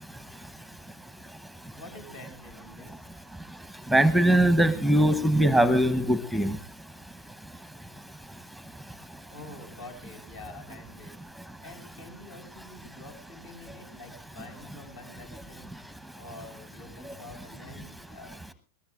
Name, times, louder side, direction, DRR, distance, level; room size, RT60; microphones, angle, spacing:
voice 1, 1.7-3.0 9.3-11.2 11.6-15.7 16.2-18.4, left 2 dB, 65° left, 4 dB, 7.7 m, -47 dB
voice 2, 3.9-6.6, right 1 dB, ahead, 14 dB, 0.9 m, -21 dB
21.5 x 19.5 x 2.4 m, 0.34 s
figure-of-eight pair, 90°, 0 cm